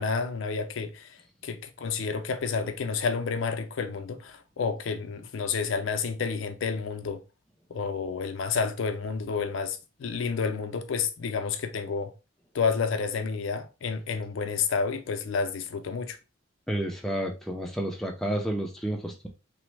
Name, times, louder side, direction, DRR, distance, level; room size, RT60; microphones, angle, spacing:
voice 1, 0.0-7.2 7.7-12.1 12.5-16.2, left 5 dB, 75° left, 0.4 m, -30 dB
voice 2, 16.7-19.3, right 1 dB, ahead, 0.4 m, -30 dB
3.0 x 2.1 x 3.2 m
head